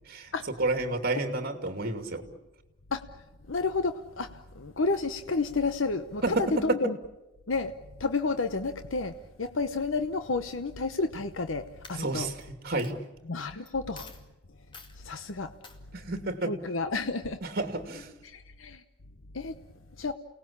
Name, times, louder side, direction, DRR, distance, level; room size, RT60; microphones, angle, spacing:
voice 1, 0.6-2.2 6.2-6.4 12.0-12.3 12.6-12.9 15.9-16.5 17.4-18.1, right 2 dB, 50° right, 7 dB, 2.6 m, -30 dB
voice 2, 3.5-7.0 7.5-7.7 8.0-12.3 13.3-14.1 15.0-15.5 16.4-17.4 18.2-18.8 19.3-19.6 20.0-20.1, left 3 dB, 80° left, 9 dB, 1.0 m, -31 dB
Coin (dropping), 11.2-11.5 11.8-12.4 12.8-12.9 13.7-13.8 13.9-14.2 14.7-15.0 15.6-15.8, left 3 dB, 25° left, 2.2 m, -48 dB
29.5 x 18.5 x 8.7 m, 1.0 s
head